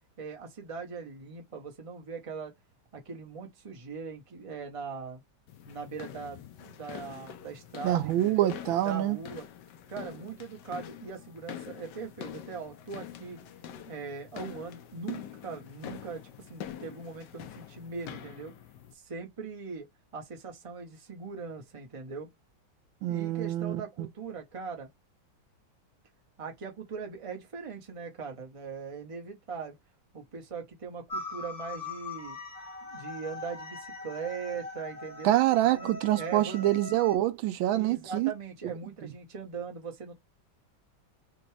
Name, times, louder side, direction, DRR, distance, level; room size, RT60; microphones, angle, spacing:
voice 1, 0.2-2.5 2.9-5.2 5.7-8.5 8.8-9.5 9.9-13.4 13.9-18.5 18.9-19.9 20.1-22.3 23.1-24.9 26.4-29.8 30.1-32.4 32.8-35.3 35.7-36.7 37.7-40.1, right 5 dB, 25° right, 0.7 m, -40 dB
sound 1, 5.5-18.9, left 10 dB, 70° left, 1.2 m, -45 dB
voice 2, 7.8-9.2 23.0-23.8 35.2-38.3, right 14 dB, 85° right, 1.4 m, -26 dB
sound 2, 31.1-37.1, left 3 dB, 30° left, 0.8 m, -41 dB
5.2 x 2.3 x 3.2 m
omnidirectional pair, 2.2 m